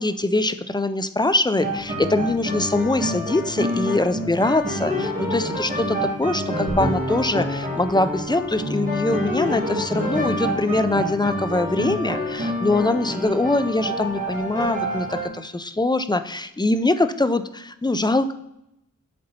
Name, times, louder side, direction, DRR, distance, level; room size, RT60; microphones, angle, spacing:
voice 1, 0.0-18.3, left 2 dB, 15° left, 11 dB, 0.4 m, -23 dB
sound 1, 1.6-15.3, equal, 25° right, 2.1 m, -27 dB
sound 2, 6.7-11.7, right 1 dB, 65° right, 1.4 m, -40 dB
6.6 x 4.0 x 4.2 m, 0.84 s
wide cardioid pair, 60°, 33 cm